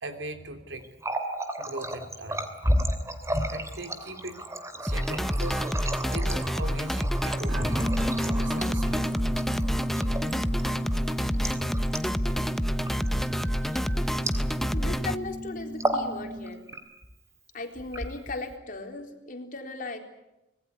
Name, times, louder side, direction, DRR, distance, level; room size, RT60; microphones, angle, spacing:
voice 1, 0.0-0.9 1.6-2.5 3.5-4.4 4.8-5.6 6.1-7.9 8.2-9.1 14.3-14.5, right 1 dB, 80° right, 7 dB, 3.2 m, -39 dB
Water tap faucet, 0.8-14.9 15.1-15.4 15.7-16.1 16.5-17.1 17.8-18.5, right 1 dB, 15° right, 2.9 m, -33 dB
sound 1, 4.9-15.2, equal, ahead, 0.8 m, -28 dB
sound 2, 7.5-16.7, equal, 55° right, 2.3 m, -35 dB
voice 2, 14.7-16.6 17.5-20.0, left 2 dB, 50° left, 4 dB, 3.9 m, -37 dB
25.5 x 20.0 x 9.8 m, 0.96 s
head